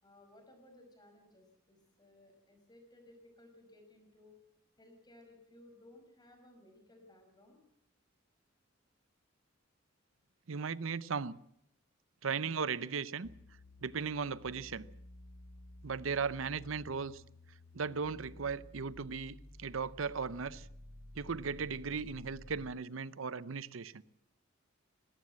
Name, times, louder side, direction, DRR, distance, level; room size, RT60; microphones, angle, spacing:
voice 1, 0.0-4.4 4.8-7.6, left 1 dB, 20° left, 5.3 m, -60 dB
voice 2, 10.5-11.3 12.2-13.3 13.8-14.9 15.8-17.2 17.7-20.7 21.2-24.0, right 5 dB, 75° right, 0.7 m, -37 dB
sound 1, 13.2-22.8, left 1 dB, 60° left, 3.5 m, -54 dB
20.0 x 17.0 x 7.6 m
head